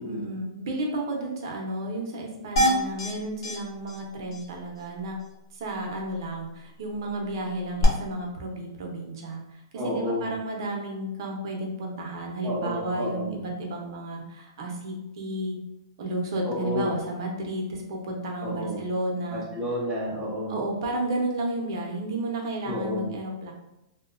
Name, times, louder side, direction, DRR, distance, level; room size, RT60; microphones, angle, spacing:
voice 1, 0.0-5.2 5.5-9.4 9.7-15.6 16.0-19.5 20.5-23.5, right 1 dB, 55° right, 1 dB, 0.7 m, -32 dB
sound 1, 2.6-3.1 3.4-3.6 3.9-4.0 4.3-4.4 7.8-7.9, equal, 70° left, 0.8 m, -23 dB
voice 2, 9.8-10.3 12.4-13.4 16.5-16.9 18.4-18.8 19.3-20.6 22.6-23.1, left 1 dB, 15° right, -5 dB, 0.7 m, -30 dB
2.7 x 2.1 x 2.5 m, 0.91 s
hypercardioid pair, 160°, 3 cm